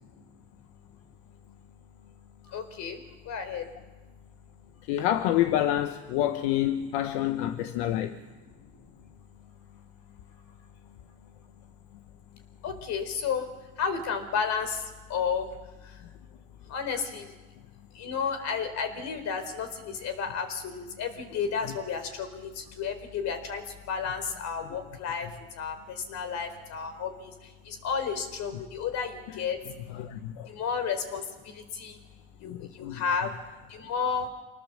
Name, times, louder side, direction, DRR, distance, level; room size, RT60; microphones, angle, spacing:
voice 1, 2.5-3.0 3.3-3.6 12.6-13.5 13.8-14.8 15.1-15.5 16.7-17.3 18.0-23.6 23.9-25.3 25.6-25.8 26.1-27.3 27.7-29.6 30.5-31.2 31.8-32.0 32.4-32.6 32.9-33.3 33.7-34.3, left 6 dB, 65° left, 4.3 m, -31 dB
voice 2, 4.9-8.2 28.5-28.6 29.9-30.5 32.4-33.0, left 12 dB, 90° left, 1.1 m, -28 dB
26.0 x 19.0 x 7.5 m
supercardioid pair, 90°, 29 cm